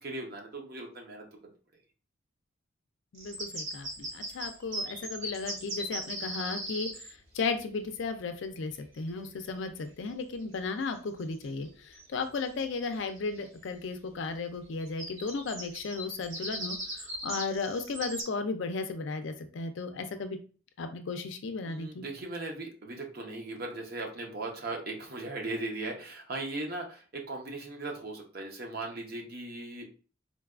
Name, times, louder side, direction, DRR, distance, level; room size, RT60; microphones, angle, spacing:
voice 1, 0.0-1.5 21.6-29.8, right 2 dB, 50° right, 1 dB, 0.7 m, -38 dB
voice 2, 3.1-20.4 20.8-22.0, left 4 dB, 65° left, 8 dB, 0.4 m, -35 dB
sound 1, 3.1-7.1 10.5-10.7 11.2-11.7 11.9-12.0 12.3-13.5 14.8-18.2, right 1 dB, 75° right, 1.4 m, -38 dB
3.9 x 2.2 x 2.4 m, 0.37 s
head